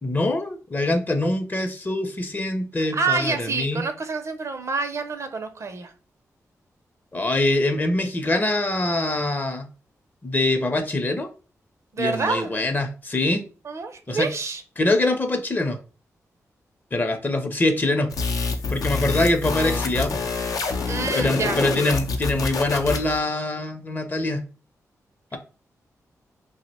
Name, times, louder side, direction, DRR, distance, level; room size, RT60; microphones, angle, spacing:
voice 1, 0.0-3.9 7.1-9.7 10.2-11.3 12.0-13.4 14.1-14.3 14.8-15.8 16.9-18.1 18.7-20.1 21.1-24.4, left 2 dB, 30° left, 0.6 m, -24 dB
voice 2, 2.8-5.9 11.9-12.5 13.6-14.6 20.9-21.6, right 4 dB, 55° right, 0.5 m, -27 dB
sound 1, 18.1-23.2, left 4 dB, 80° left, 0.5 m, -27 dB
2.7 x 2.1 x 4.0 m
cardioid pair, 70°, 6 cm